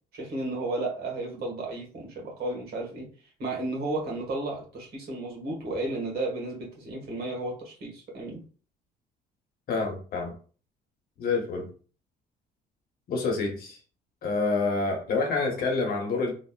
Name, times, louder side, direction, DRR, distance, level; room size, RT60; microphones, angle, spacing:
voice 1, 0.1-3.1 3.4-8.4, right 2 dB, 65° right, -2 dB, 1.5 m, -33 dB
voice 2, 9.7-10.3 11.2-11.7 13.1-13.8 14.2-16.3, left 3 dB, 60° left, 1 dB, 1.1 m, -27 dB
3.2 x 2.5 x 2.4 m, 0.39 s
cardioid pair, 110°, 17 cm